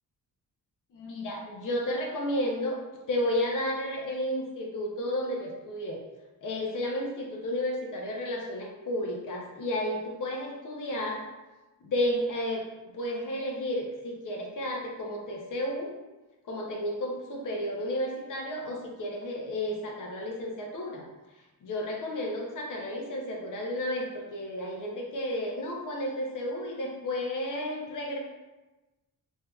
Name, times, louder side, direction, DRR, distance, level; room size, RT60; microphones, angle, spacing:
voice 1, 0.9-2.8 3.1-6.0 6.4-11.2 11.8-12.6 12.9-15.9 16.5-21.0 21.6-28.2, left 1 dB, 60° left, 0 dB, 0.7 m, -32 dB
3.3 x 2.8 x 2.3 m, 1.1 s
cardioid pair, 110°, 35 cm